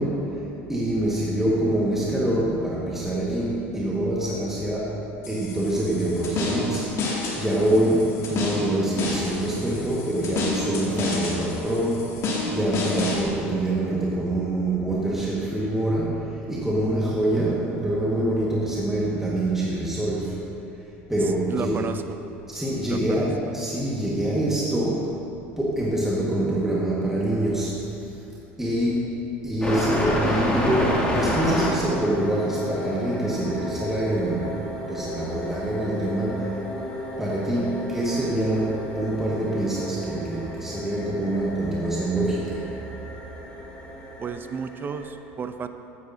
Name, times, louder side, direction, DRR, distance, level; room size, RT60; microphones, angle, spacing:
voice 1, 0.0-20.5 21.1-21.8 22.5-25.2 25.6-28.1 28.6-36.6 37.2-42.7, right 1 dB, 5° right, -6 dB, 1.6 m, -25 dB
sound 1, 5.2-13.2, left 2 dB, 45° left, 2.3 m, -30 dB
voice 2, 21.5-22.0 22.9-23.3 44.2-45.7, right 6 dB, 30° right, 9 dB, 0.5 m, -32 dB
sound 2, 29.6-45.1, left 1 dB, 15° left, 2.3 m, -31 dB
13.5 x 9.6 x 2.7 m, 2.9 s
hypercardioid pair, 90°, 7 cm